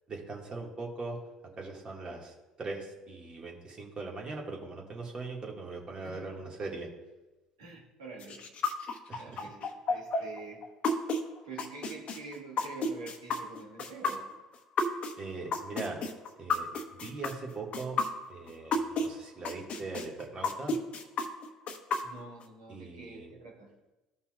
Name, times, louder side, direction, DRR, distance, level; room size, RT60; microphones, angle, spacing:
voice 1, 0.1-1.2 1.6-6.9 9.1-9.4 15.2-16.0 16.4-18.0 18.3-20.8 22.7-23.3, right 3 dB, 35° right, -1 dB, 2.0 m, -40 dB
voice 2, 6.0-6.4 7.6-8.4 9.2-10.7 11.4-14.3 22.0-23.7, right 4 dB, 70° right, -3 dB, 1.8 m, -46 dB
sound 1, 8.2-19.1 19.4-22.4, left 3 dB, 45° left, 1.0 m, -31 dB
15.0 x 5.5 x 2.5 m, 1.1 s
figure-of-eight pair, 60°, 3 cm